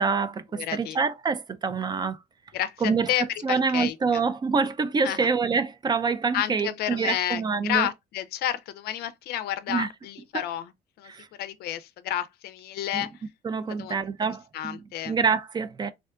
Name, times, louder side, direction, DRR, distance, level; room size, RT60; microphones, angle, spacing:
voice 1, 0.0-2.2 2.8-3.1 3.4-7.9 9.7-9.9 10.3-10.4 11.1-11.3 12.9-13.1 13.4-15.9, right 5 dB, 25° right, 0.3 m, -26 dB
voice 2, 0.6-1.0 2.5-2.8 3.1-4.2 5.0-5.3 6.3-10.7 11.0-11.1 11.4-13.1 13.8-14.0 14.5-15.2, left 12 dB, 70° left, 0.4 m, -30 dB
3.6 x 2.2 x 2.3 m
cardioid pair, 110°, 17 cm